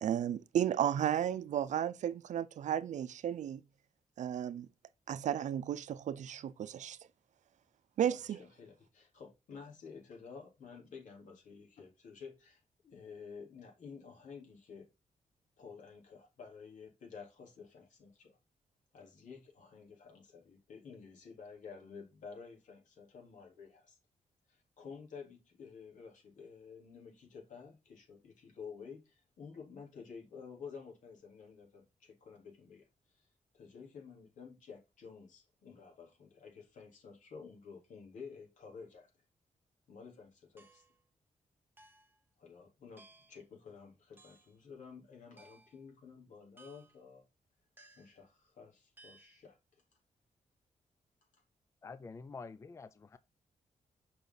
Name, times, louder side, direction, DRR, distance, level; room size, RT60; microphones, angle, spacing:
voice 1, 0.0-3.6 4.2-4.7 5.1-7.0 8.0-8.4, right 10 dB, 75° right, 0.6 m, -33 dB
voice 2, 8.1-14.9 15.6-18.4 18.9-24.0 24.5-33.3 33.5-39.1 39.9-40.8 42.4-47.2 48.0-49.8 51.3-51.4, left 5 dB, 85° left, 3.7 m, -52 dB
sound 1, 40.6-41.0 41.8-42.2 43.0-43.4 44.2-44.5 45.4-45.8 46.6-47.0 47.8-48.3 49.0-49.4, right 2 dB, 15° right, 1.4 m, -61 dB
voice 3, 51.8-53.2, left 4 dB, 25° left, 0.4 m, -48 dB
6.8 x 5.7 x 4.0 m
wide cardioid pair, 155°, 13 cm